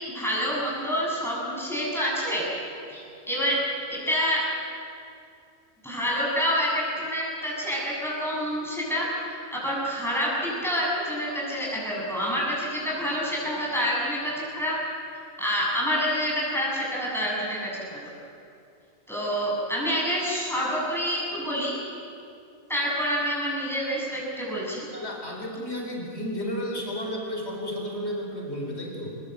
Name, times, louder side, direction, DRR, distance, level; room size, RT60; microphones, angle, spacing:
voice 1, 0.1-2.4 2.9-3.0 3.3-3.6 3.9-4.4 5.8-14.7 15.4-18.1 19.1-21.7 22.7-24.9, equal, ahead, -5 dB, 7.9 m, -27 dB
voice 2, 24.9-29.1, equal, 50° left, 0 dB, 4.4 m, -32 dB
24.5 x 21.0 x 8.3 m, 2.5 s
omnidirectional pair, 1.4 m